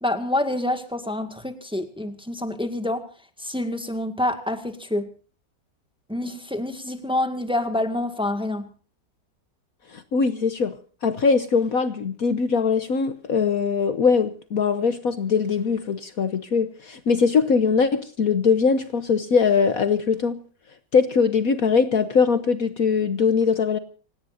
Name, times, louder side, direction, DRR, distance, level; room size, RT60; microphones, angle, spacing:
voice 1, 0.0-3.0 3.4-5.1 6.1-8.7, left 1 dB, 5° right, 7 dB, 1.8 m, -27 dB
voice 2, 9.9-10.7 11.0-20.4 20.9-23.8, left 5 dB, 55° left, 11 dB, 1.4 m, -21 dB
28.5 x 17.5 x 2.7 m, 0.40 s
omnidirectional pair, 1.9 m